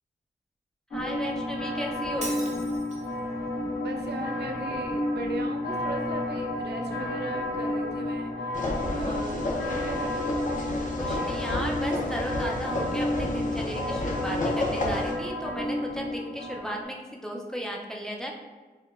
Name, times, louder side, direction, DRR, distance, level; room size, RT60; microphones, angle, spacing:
sound 1, 0.9-16.8, left 1 dB, 90° left, 0.9 m, -31 dB
voice 1, 0.9-2.3 11.0-18.3, equal, 5° left, -1 dB, 0.4 m, -35 dB
Shatter, 2.2-3.2, right 2 dB, 45° right, 0.6 m, -39 dB
voice 2, 3.8-8.6 8.9-10.4, right 2 dB, 85° right, 2 dB, 0.4 m, -37 dB
sound 2, 8.5-15.1, left 1 dB, 50° left, 0.6 m, -31 dB
4.4 x 2.2 x 2.3 m, 1.3 s
wide cardioid pair, 115°, 17 cm